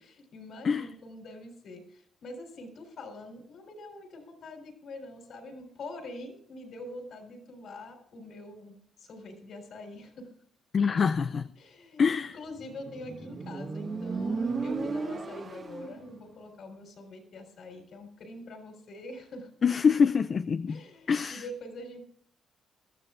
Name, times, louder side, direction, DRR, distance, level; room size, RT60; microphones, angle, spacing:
voice 1, 0.0-10.3 11.6-12.0 12.3-19.5 20.7-22.0, left 2 dB, 65° left, 3.8 m, -45 dB
voice 2, 10.7-11.5 12.0-12.4 19.6-20.8 21.1-21.4, left 6 dB, 45° left, 0.4 m, -25 dB
Motorcycle, 12.6-16.1, right 4 dB, 40° right, 1.6 m, -34 dB
22.0 x 13.0 x 2.5 m
cardioid pair, 90°, 0 cm